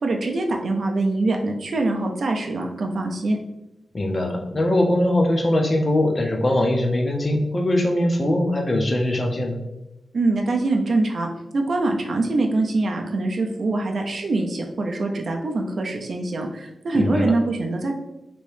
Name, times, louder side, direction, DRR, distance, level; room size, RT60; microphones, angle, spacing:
voice 1, 0.0-3.4 10.1-11.3 11.5-18.0, right 2 dB, 55° right, 2 dB, 0.4 m, -24 dB
voice 2, 3.9-9.6 16.9-17.3, left 1 dB, 30° left, 2 dB, 0.5 m, -21 dB
3.0 x 2.6 x 3.2 m, 0.94 s
wide cardioid pair, 150°, 0 cm